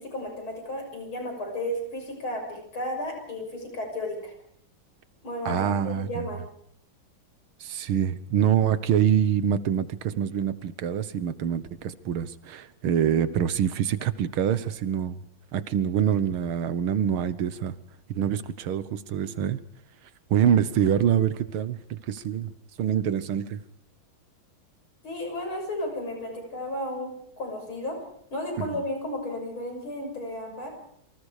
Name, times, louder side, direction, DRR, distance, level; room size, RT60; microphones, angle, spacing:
voice 1, 0.0-4.3 5.2-6.4 25.0-28.0 28.3-30.7, left 1 dB, 80° left, 3 dB, 7.3 m, -33 dB
voice 2, 5.5-6.3 7.6-15.2 15.5-17.8 18.1-19.6 20.3-22.5 22.8-23.6 28.6-28.7, right 9 dB, 85° right, 13 dB, 2.0 m, -25 dB
27.5 x 25.0 x 5.0 m, 0.67 s
omnidirectional pair, 2.2 m